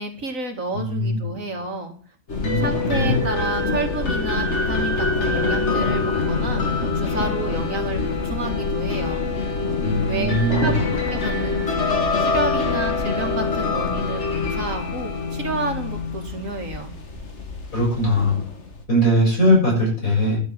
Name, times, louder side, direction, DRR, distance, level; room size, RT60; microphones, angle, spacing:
voice 1, 0.0-1.9 2.6-6.6 6.9-9.3 10.0-10.7 11.1-16.9, right 2 dB, 70° right, 4 dB, 2.7 m, -30 dB
voice 2, 0.7-1.3 2.4-3.2 9.8-10.8 17.7-18.4 18.9-20.4, equal, 80° left, -2 dB, 7.1 m, -20 dB
sound 1, 2.3-18.8, left 3 dB, 55° left, 2.2 m, -25 dB
11.5 x 7.4 x 7.3 m, 0.40 s
omnidirectional pair, 1.4 m